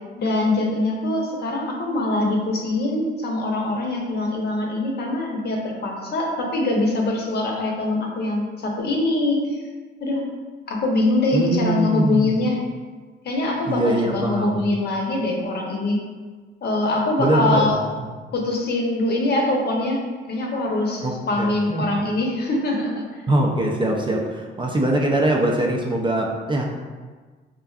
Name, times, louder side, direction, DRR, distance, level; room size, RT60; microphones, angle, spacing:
voice 1, 0.2-9.6 10.0-10.2 10.7-12.6 13.2-16.0 16.6-17.8 18.3-20.0 20.3-23.2 25.0-25.1, left 2 dB, 55° left, -1 dB, 0.8 m, -23 dB
voice 2, 11.3-12.4 13.7-14.7 17.2-17.7 18.0-18.1 21.0-21.9 23.3-26.6, right 1 dB, 25° right, 0 dB, 0.4 m, -22 dB
4.5 x 2.5 x 2.3 m, 1.4 s
cardioid pair, 90°, 20 cm